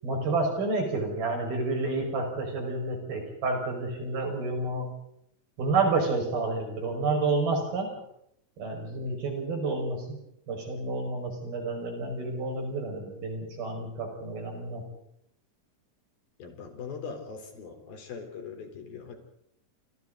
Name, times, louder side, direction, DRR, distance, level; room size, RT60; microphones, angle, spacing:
voice 1, 0.0-4.9 5.6-7.9 8.6-10.2 10.5-14.8, right 3 dB, 90° right, 2 dB, 7.3 m, -29 dB
voice 2, 16.4-19.2, left 5 dB, 85° left, 4 dB, 5.7 m, -41 dB
29.0 x 27.5 x 4.0 m, 0.75 s
omnidirectional pair, 4.1 m